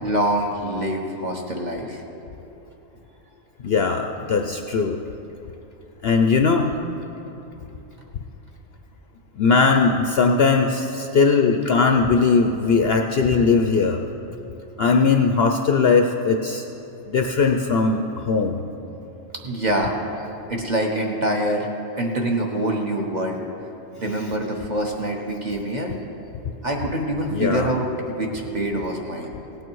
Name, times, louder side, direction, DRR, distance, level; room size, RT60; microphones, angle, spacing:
voice 1, 0.0-2.0 19.4-20.0 20.5-21.7 22.0-23.4 24.0-25.9 26.6-29.3, right 1 dB, 35° right, 0 dB, 1.2 m, -25 dB
voice 2, 3.6-5.0 6.0-6.7 9.4-14.0 14.8-16.6 17.1-18.6 24.1-24.3 27.3-27.7, left 4 dB, 60° left, 4 dB, 0.7 m, -19 dB
17.5 x 8.8 x 4.6 m, 2.9 s
omnidirectional pair, 1.4 m